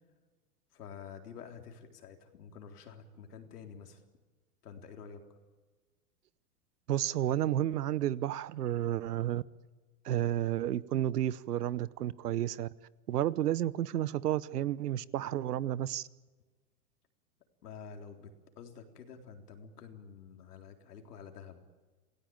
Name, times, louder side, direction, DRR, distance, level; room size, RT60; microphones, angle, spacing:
voice 1, 0.7-4.0 4.6-5.4 17.6-21.6, left 6 dB, 80° left, 3.9 m, -49 dB
voice 2, 6.9-9.4 10.0-12.7 13.1-16.1, right 12 dB, 85° right, 1.0 m, -31 dB
27.5 x 17.5 x 8.9 m
hypercardioid pair, 115°, 45 cm